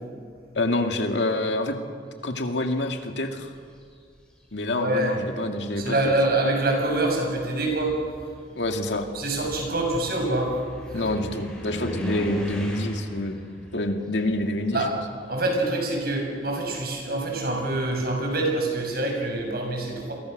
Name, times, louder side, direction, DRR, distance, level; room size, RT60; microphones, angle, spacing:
voice 1, 0.5-1.8 2.2-3.5 4.5-6.1 8.6-9.1 10.9-13.4 13.7-14.8, left 2 dB, 85° left, 4 dB, 2.3 m, -27 dB
sound 1, 3.4-4.0 5.0-5.1 5.6-15.5 15.8-18.4, equal, 5° left, 6.1 m, -38 dB
voice 2, 4.7-5.2 5.8-8.0 9.1-10.6 10.9-11.0 14.7-14.9 15.3-20.1, right 2 dB, 60° right, 1 dB, 6.9 m, -25 dB
29.5 x 23.0 x 6.7 m, 2.1 s
head